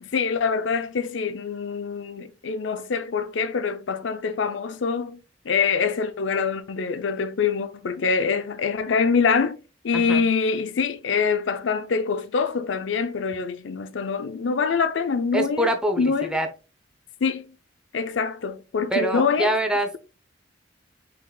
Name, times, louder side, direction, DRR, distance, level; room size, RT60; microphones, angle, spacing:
voice 1, 0.0-5.2 5.4-9.6 9.8-15.7 16.0-16.4 17.2-17.5 17.9-19.5, left 5 dB, 75° left, 0.5 m, -25 dB
voice 2, 9.9-10.2 15.3-16.5 18.9-19.9, right 1 dB, 5° right, 0.6 m, -24 dB
5.7 x 3.8 x 2.2 m
head